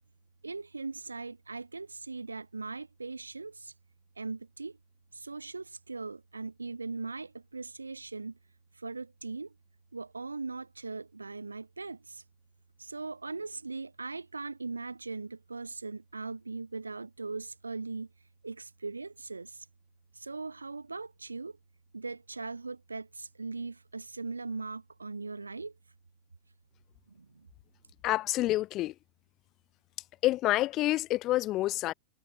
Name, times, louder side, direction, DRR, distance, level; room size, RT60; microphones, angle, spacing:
voice 1, 0.4-3.7 4.2-4.8 5.1-8.3 8.8-9.5 9.9-12.2 12.8-18.1 18.4-19.6 20.1-21.6 21.9-25.7 27.1-27.5, right 3 dB, 80° right, 1.3 m, -40 dB
voice 2, 28.0-28.9 30.2-31.9, left 16 dB, 35° left, 0.6 m, -28 dB
figure-of-eight pair, 90°, 0 cm